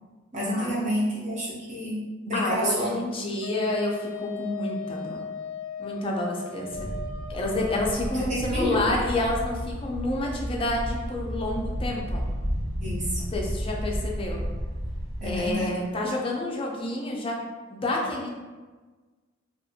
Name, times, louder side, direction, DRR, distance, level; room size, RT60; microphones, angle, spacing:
voice 1, 0.3-3.0 8.1-8.8 12.8-13.2 15.2-15.8, equal, 35° right, -6 dB, 0.8 m, -29 dB
voice 2, 2.3-5.2 5.8-6.9 7.3-12.3 13.3-14.4 15.2-17.4 17.7-18.3, left 2 dB, 25° left, -1 dB, 0.4 m, -29 dB
Wind instrument woodwind instrument, 3.4-7.8, left 6 dB, 85° left, 0.3 m, -37 dB
sound 1, 6.7-15.5, equal, 90° right, 0.6 m, -32 dB
2.8 x 2.5 x 2.7 m, 1.3 s
head